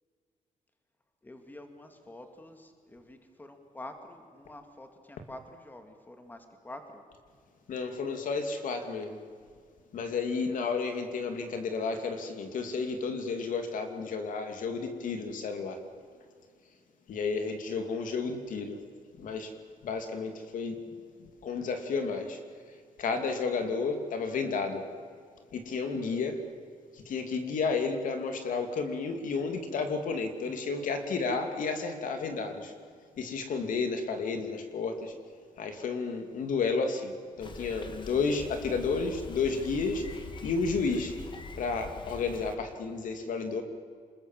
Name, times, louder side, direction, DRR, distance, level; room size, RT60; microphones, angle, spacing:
voice 1, 1.2-7.0, left 1 dB, 15° left, 6 dB, 2.2 m, -47 dB
voice 2, 7.7-9.2 9.9-15.8 17.1-18.8 19.2-19.5 19.8-20.8 21.2-22.4 22.7-24.9 25.5-26.4 26.9-32.7 33.2-35.1 35.6-40.1 40.4-41.2 41.6-43.6, left 4 dB, 75° left, 6 dB, 2.8 m, -32 dB
Bicycle, 37.4-42.6, left 3 dB, 35° left, 2.0 m, -44 dB
27.0 x 21.0 x 7.5 m, 2.1 s
wide cardioid pair, 145°, 14 cm